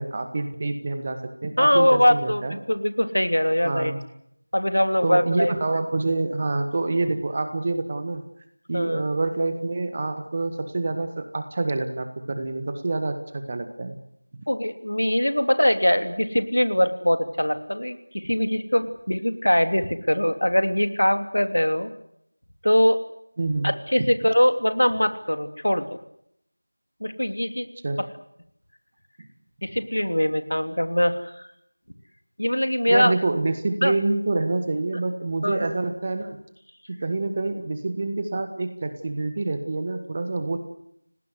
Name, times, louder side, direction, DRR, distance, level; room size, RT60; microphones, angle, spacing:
voice 1, 0.0-2.6 3.6-4.0 5.0-8.2 8.7-14.0 23.4-23.7 27.8-28.0 29.2-29.3 32.9-36.4 36.9-40.6, right 2 dB, 20° right, 8 dB, 1.6 m, -27 dB
voice 2, 1.6-3.9 4.5-5.5 8.7-9.0 14.5-21.9 22.6-23.0 23.6-25.8 27.0-27.7 29.6-31.5 32.4-33.1 33.8-33.9 35.4-35.7, equal, 70° left, 9 dB, 3.2 m, -22 dB
29.5 x 18.5 x 8.1 m, 0.74 s
figure-of-eight pair, 175°, 0 cm